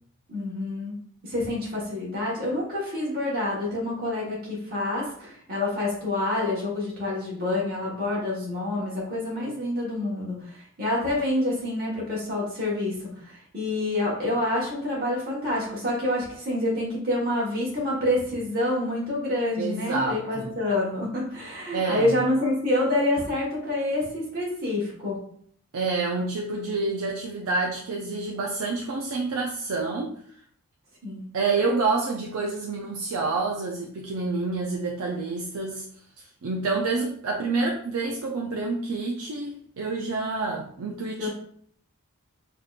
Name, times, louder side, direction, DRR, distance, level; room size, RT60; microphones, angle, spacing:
voice 1, 0.3-1.0 1.2-25.2 31.0-31.2 41.2-41.3, left 1 dB, 40° right, -6 dB, 1.2 m, -27 dB
voice 2, 19.6-20.5 21.7-22.2 25.7-30.1 31.3-35.9 36.4-41.3, right 3 dB, 75° right, -1 dB, 0.5 m, -28 dB
5.0 x 2.8 x 2.4 m, 0.62 s
head